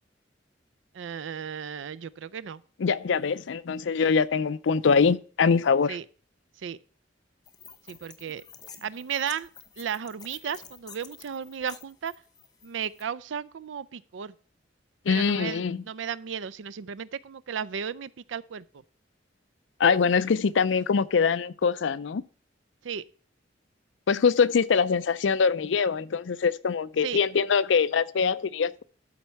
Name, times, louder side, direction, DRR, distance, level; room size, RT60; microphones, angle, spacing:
voice 1, 0.9-2.6 5.9-6.0 6.6-6.8 7.9-8.4 8.8-9.5 9.8-12.1 12.6-14.3 15.1-18.6 22.8-23.0 27.0-27.2, right 7 dB, 85° right, 0.4 m, -34 dB
voice 2, 2.8-6.0 15.1-15.8 19.8-22.2 24.1-28.8, left 5 dB, 80° left, 0.5 m, -23 dB
sound 1, 7.5-13.0, left 6 dB, 20° left, 0.8 m, -49 dB
12.5 x 4.4 x 5.7 m
head